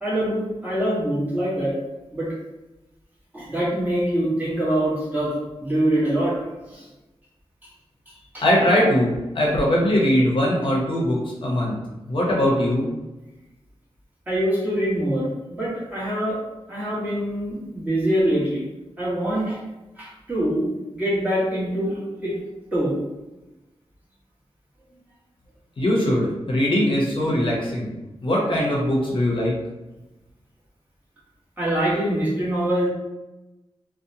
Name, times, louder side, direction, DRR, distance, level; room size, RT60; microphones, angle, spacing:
voice 1, 0.0-1.7 2.1-2.3 3.3-5.3 5.6-6.4 6.7-6.8 8.3-8.4 14.3-16.4 16.7-18.6 19.0-19.6 20.0-20.7 20.9-22.4 22.7-23.0 31.6-32.9, right 1 dB, 15° right, -8 dB, 1.1 m, -24 dB
voice 2, 8.4-11.8 12.1-12.9 25.8-27.9 28.2-29.6, equal, 55° left, -4 dB, 0.7 m, -21 dB
2.7 x 2.1 x 2.7 m, 1.0 s
wide cardioid pair, 110°, 10 cm